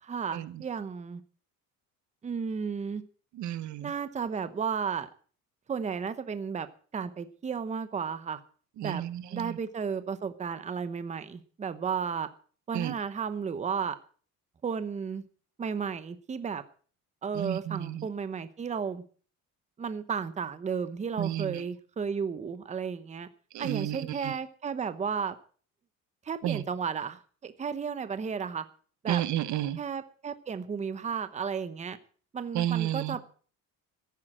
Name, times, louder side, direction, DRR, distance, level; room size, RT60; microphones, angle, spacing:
voice 1, 0.0-1.2 2.2-3.0 3.8-5.1 5.7-6.7 6.9-8.4 8.8-9.0 9.3-12.3 12.7-14.0 14.6-15.2 15.6-16.6 17.2-19.0 19.8-23.3 23.6-25.3 26.2-28.7 29.0-29.2 29.8-32.0 32.3-33.2, right 6 dB, 20° right, 12 dB, 0.9 m, -33 dB
voice 2, 3.3-3.9 8.8-9.6 12.7-12.9 17.3-18.1 21.2-21.6 23.5-24.3 26.4-26.6 29.1-29.8 32.5-33.2, right 12 dB, 55° right, 15 dB, 1.0 m, -31 dB
14.0 x 10.5 x 7.4 m, 0.43 s
cardioid pair, 155°, 34 cm